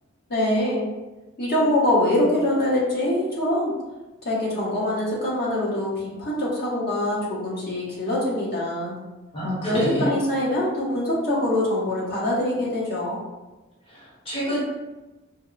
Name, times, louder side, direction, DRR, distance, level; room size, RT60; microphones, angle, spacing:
voice 1, 0.3-0.9 1.4-3.7 4.2-8.9 9.6-13.2, left 1 dB, 50° left, -7 dB, 1.2 m, -24 dB
voice 2, 9.3-10.1 13.9-14.6, equal, 25° left, -8 dB, 1.1 m, -27 dB
4.6 x 2.1 x 2.4 m, 1.1 s
head